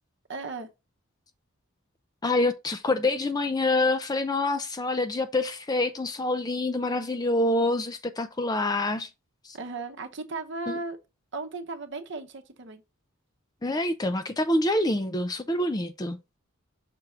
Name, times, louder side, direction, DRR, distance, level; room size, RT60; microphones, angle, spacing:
voice 1, 0.3-0.7 9.5-11.0 11.3-12.8, right 3 dB, 55° right, 0.9 m, -36 dB
voice 2, 2.2-9.1 9.4-9.6 10.7-10.8 13.6-16.2, left 2 dB, 20° left, 0.4 m, -26 dB
6.0 x 3.6 x 4.3 m
head